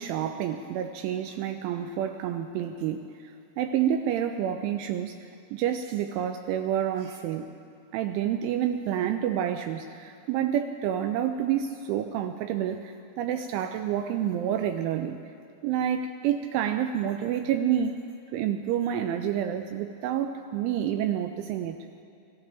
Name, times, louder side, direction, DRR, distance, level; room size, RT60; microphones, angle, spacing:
voice 1, 0.0-7.5 7.9-15.2 15.6-18.0 18.3-21.8, right 10 dB, 85° right, 7 dB, 2.8 m, -29 dB
26.5 x 15.5 x 3.4 m, 2.5 s
omnidirectional pair, 5.9 m